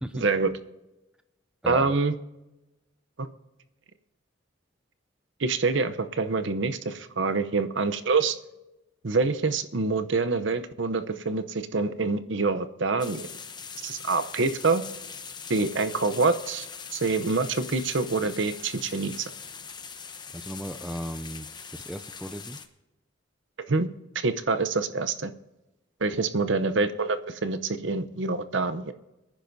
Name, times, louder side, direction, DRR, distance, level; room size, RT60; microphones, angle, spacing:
voice 1, 0.1-0.5 1.7-2.1 3.2-3.3 5.4-8.4 9.0-13.3 13.8-14.8 15.5-16.7 16.9-19.3 23.7-23.9 24.1-25.3 26.0-28.9, right 3 dB, 60° right, 10 dB, 0.8 m, -26 dB
voice 2, 1.6-2.0 20.3-21.5 21.7-22.6, equal, 5° right, 8 dB, 0.4 m, -36 dB
sound 1, 13.0-22.7, left 6 dB, 20° left, 0.8 m, -42 dB
23.5 x 10.5 x 2.7 m, 0.99 s
head